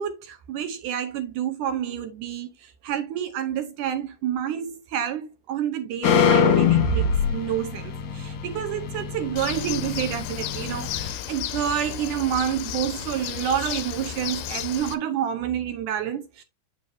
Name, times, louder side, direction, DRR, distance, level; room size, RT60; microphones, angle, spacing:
voice 1, 0.0-16.4, right 10 dB, 75° right, 1.9 m, -29 dB
sound 1, 6.0-11.1, left 6 dB, 60° left, 2.5 m, -24 dB
Bird, 9.4-14.9, left 12 dB, 75° left, 2.2 m, -33 dB
8.3 x 7.4 x 2.7 m
omnidirectional pair, 4.6 m